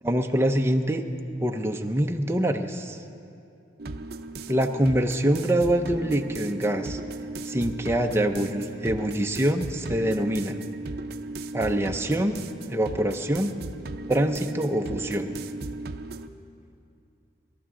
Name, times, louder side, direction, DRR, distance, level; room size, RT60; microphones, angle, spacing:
voice 1, 0.0-1.0 1.4-3.0 4.5-7.0 7.5-10.6 11.5-12.4 12.7-13.5 14.1-15.3, right 1 dB, 15° right, 4 dB, 0.6 m, -25 dB
sound 1, 3.8-16.3, right 2 dB, 55° right, 0.6 m, -36 dB
24.5 x 12.0 x 3.8 m, 2.6 s
head